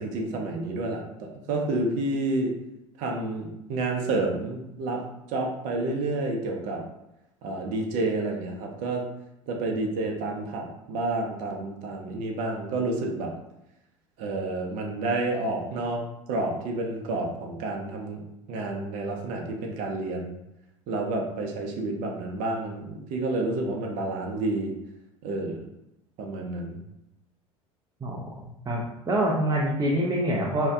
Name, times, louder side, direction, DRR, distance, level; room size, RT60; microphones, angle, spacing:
voice 1, 0.0-2.6 3.0-6.8 7.4-9.1 9.5-13.3 14.2-18.2 18.5-20.4 20.9-24.8 25.2-25.7 26.2-26.8, right 2 dB, 50° right, 1 dB, 0.7 m, -29 dB
voice 2, 28.7-30.7, right 1 dB, 20° right, -4 dB, 0.6 m, -25 dB
2.8 x 2.2 x 3.4 m, 0.87 s
figure-of-eight pair, 75°, 17 cm